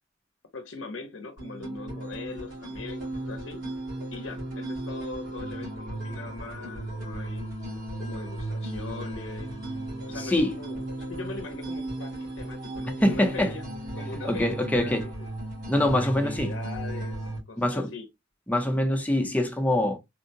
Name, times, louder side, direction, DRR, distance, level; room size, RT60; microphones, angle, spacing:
voice 1, 0.5-3.7 4.1-7.5 8.0-9.6 10.1-13.6 13.9-15.3 15.9-18.1, left 4 dB, 90° left, 0.6 m, -41 dB
sound 1, 1.4-17.4, right 1 dB, 70° right, 2.1 m, -35 dB
voice 2, 13.0-13.5 14.2-15.1 15.7-16.5 17.6-17.9 18.5-20.0, left 1 dB, 10° left, 0.6 m, -24 dB
3.6 x 2.1 x 2.6 m
head